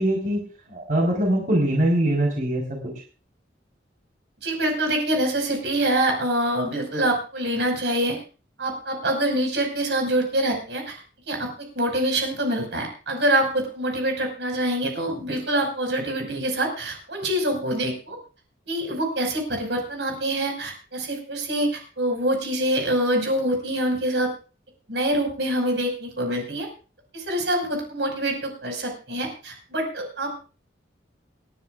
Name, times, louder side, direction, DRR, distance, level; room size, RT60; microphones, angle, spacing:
voice 1, 0.0-2.6, right 1 dB, 45° right, -1 dB, 4.2 m, -22 dB
voice 2, 4.4-8.2 8.6-11.0 11.3-18.2 18.7-24.3 24.9-26.7 27.1-30.3, right 1 dB, 70° right, 2 dB, 5.5 m, -25 dB
28.5 x 11.0 x 2.5 m, 0.35 s
head